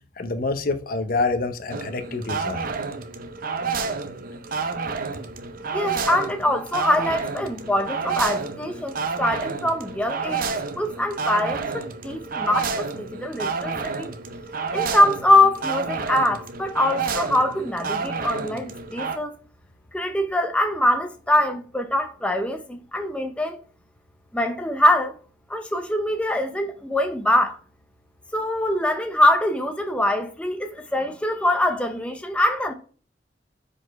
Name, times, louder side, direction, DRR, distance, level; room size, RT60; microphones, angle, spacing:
voice 1, 0.2-2.8, left 3 dB, 55° left, 0.7 m, -27 dB
sound 1, 1.7-19.2, right 4 dB, 50° right, 0.6 m, -30 dB
voice 2, 5.7-10.5 10.8-14.1 14.7-19.3 19.9-23.6 24.3-25.2 25.5-27.6 28.3-32.7, left 1 dB, 5° left, 0.6 m, -23 dB
5.0 x 4.2 x 5.1 m
head